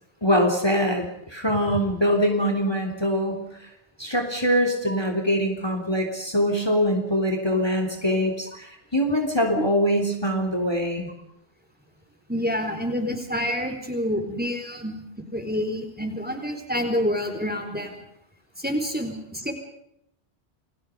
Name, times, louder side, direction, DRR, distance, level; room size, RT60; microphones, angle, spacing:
voice 1, 0.2-3.7 4.0-11.1, equal, 25° left, 3 dB, 3.5 m, -23 dB
voice 2, 12.3-15.0 15.3-17.9 18.6-19.5, equal, 10° right, 5 dB, 4.3 m, -28 dB
29.5 x 23.5 x 5.2 m, 0.75 s
omnidirectional pair, 1.1 m